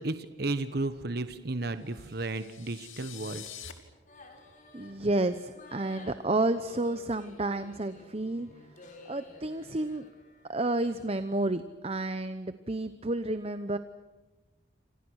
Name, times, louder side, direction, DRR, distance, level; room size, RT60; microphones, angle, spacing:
voice 1, 0.0-3.4, right 2 dB, 50° right, 10 dB, 1.2 m, -33 dB
sound 1, 1.8-3.7, left 10 dB, 75° left, 2.8 m, -46 dB
sound 2, 4.1-11.1, left 1 dB, 40° left, 4.5 m, -52 dB
voice 2, 4.7-8.5 9.1-10.1 10.5-13.8, right 2 dB, 30° right, 11 dB, 0.8 m, -30 dB
29.0 x 26.5 x 6.4 m, 1.1 s
head